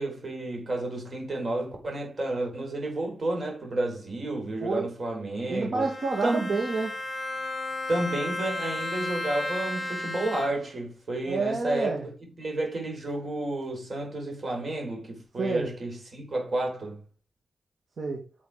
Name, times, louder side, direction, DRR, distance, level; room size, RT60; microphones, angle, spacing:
voice 1, 0.0-5.9 6.2-6.5 7.9-12.1 12.4-17.0, right 2 dB, 40° right, 4.8 m, -31 dB
voice 2, 5.5-6.9 11.2-12.1 15.4-15.7 18.0-18.3, right 3 dB, 60° right, 2.3 m, -29 dB
Bowed string instrument, 5.8-10.8, left 2 dB, 25° left, 1.4 m, -34 dB
8.9 x 7.3 x 5.1 m
wide cardioid pair, 165°, 0 cm